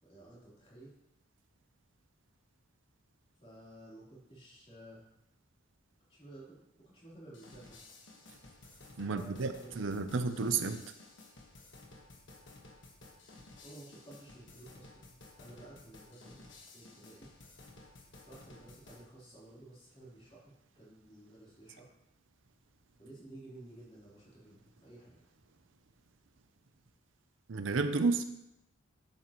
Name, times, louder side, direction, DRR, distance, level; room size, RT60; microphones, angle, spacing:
voice 1, 0.0-0.9 3.4-5.1 6.1-7.8 9.1-10.3 13.6-16.4 16.7-17.3 18.3-21.9 23.0-25.2, right 1 dB, 30° left, -7 dB, 3.5 m, -54 dB
sound 1, 7.3-19.1, left 2 dB, 65° left, 1.4 m, -55 dB
voice 2, 9.0-10.8 27.5-28.2, right 4 dB, 70° right, 9 dB, 0.6 m, -31 dB
10.5 x 7.7 x 3.0 m, 0.85 s
head